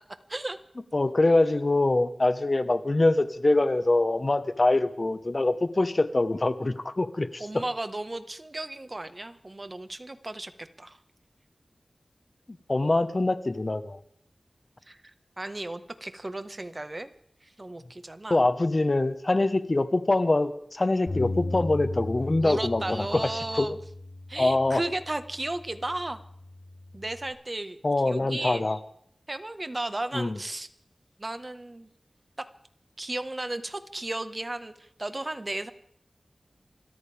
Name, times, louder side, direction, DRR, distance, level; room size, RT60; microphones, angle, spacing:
voice 1, 0.9-7.6 12.7-14.0 18.3-23.7 24.4-24.8 27.8-28.8 30.1-30.4, left 2 dB, 45° left, 11 dB, 1.3 m, -24 dB
voice 2, 7.4-11.0 14.9-15.0 15.4-17.1 17.4-18.4 22.4-23.8 24.3-26.2 26.9-27.8 28.1-28.6 29.3-30.7 31.2-31.9 32.4-32.5 33.0-35.7, right 2 dB, 35° right, 10 dB, 1.5 m, -34 dB
Bass guitar, 21.1-27.3, left 2 dB, 70° left, 3.5 m, -37 dB
27.5 x 13.5 x 3.6 m, 0.68 s
wide cardioid pair, 50°, 0 cm